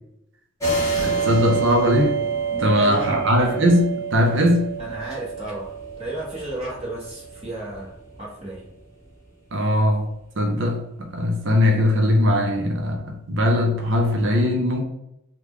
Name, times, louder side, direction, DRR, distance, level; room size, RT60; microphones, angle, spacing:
sound 1, 0.6-7.7, right 5 dB, 15° left, 1.0 m, -27 dB
voice 1, 1.0-2.2 2.6-4.7 9.5-10.1 10.4-14.9, left 1 dB, 60° right, 0.7 m, -20 dB
voice 2, 2.5-3.3 4.8-8.7, right 1 dB, 30° right, 1.2 m, -34 dB
3.8 x 2.3 x 3.1 m
head